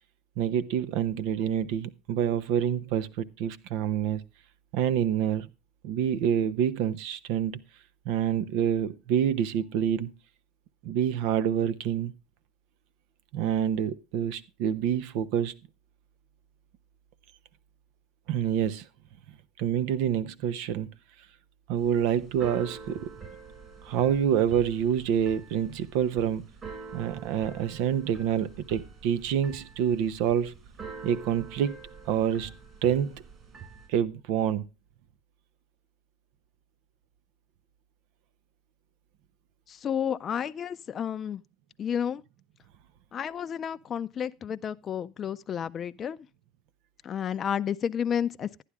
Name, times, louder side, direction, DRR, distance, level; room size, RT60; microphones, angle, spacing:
voice 1, 0.4-4.2 4.7-5.5 5.8-7.6 8.0-10.1 10.8-12.1 13.3-15.6 18.3-18.9 19.6-20.9 21.7-23.1 23.8-26.4 26.9-30.5 31.0-31.8 32.1-32.5 32.8-33.2 33.9-34.7, right 9 dB, 70° right, 0.9 m, -27 dB
Keyboard (musical), 21.8-33.9, right 5 dB, 35° right, 6.2 m, -46 dB
voice 2, 39.7-41.4 41.8-42.2 43.1-46.3 47.0-48.6, left 8 dB, 35° left, 0.5 m, -31 dB
11.5 x 10.0 x 3.5 m
supercardioid pair, 105°, 0 cm